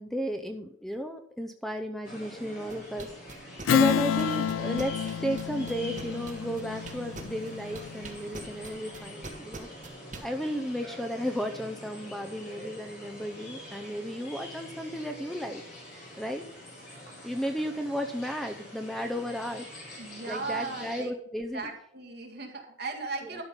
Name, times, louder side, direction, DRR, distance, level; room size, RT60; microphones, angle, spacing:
voice 1, 0.0-9.7 10.2-15.6 16.2-16.4 17.2-21.7 23.4-23.5, equal, ahead, 5 dB, 0.6 m, -34 dB
sound 1, 2.0-21.0, equal, 55° left, 3.6 m, -45 dB
sound 2, 2.7-10.2, right 3 dB, 40° right, 1.7 m, -42 dB
Strum, 3.7-8.6, left 8 dB, 80° left, 0.3 m, -29 dB
voice 2, 20.0-21.1 21.5-23.4, right 3 dB, 55° right, 1 dB, 2.1 m, -37 dB
12.5 x 5.6 x 5.3 m, 0.70 s
head